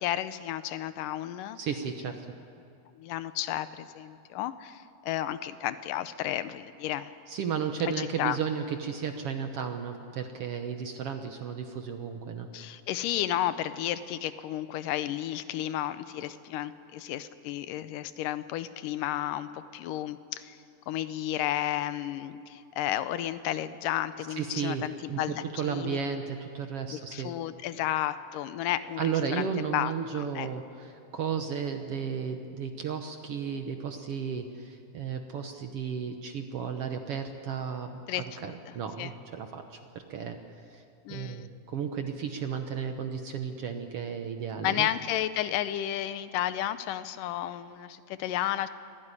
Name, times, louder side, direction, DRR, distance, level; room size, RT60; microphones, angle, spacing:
voice 1, 0.0-1.6 3.0-7.1 8.0-8.4 12.5-20.6 20.9-26.0 26.9-30.5 38.1-38.5 39.0-39.1 41.1-41.5 44.6-48.7, left 12 dB, 85° left, 13 dB, 2.4 m, -32 dB
voice 2, 1.6-2.3 7.3-12.5 24.3-27.3 29.0-40.4 40.7-40.8 41.1-44.9, right 7 dB, 65° right, 6 dB, 1.6 m, -34 dB
24.5 x 16.5 x 9.8 m, 2.5 s
omnidirectional pair, 3.7 m